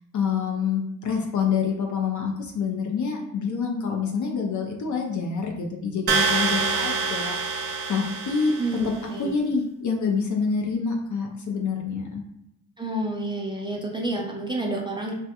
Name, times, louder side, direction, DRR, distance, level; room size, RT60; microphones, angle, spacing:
voice 1, 0.1-8.6 9.2-12.2, left 5 dB, 45° left, 1 dB, 0.5 m, -27 dB
sound 1, 6.1-9.0, right 4 dB, 65° right, 0.5 m, -26 dB
voice 2, 8.6-9.4 12.8-15.1, right 1 dB, 10° right, -2 dB, 0.6 m, -29 dB
2.2 x 2.1 x 2.8 m, 0.83 s
supercardioid pair, 45°, 42 cm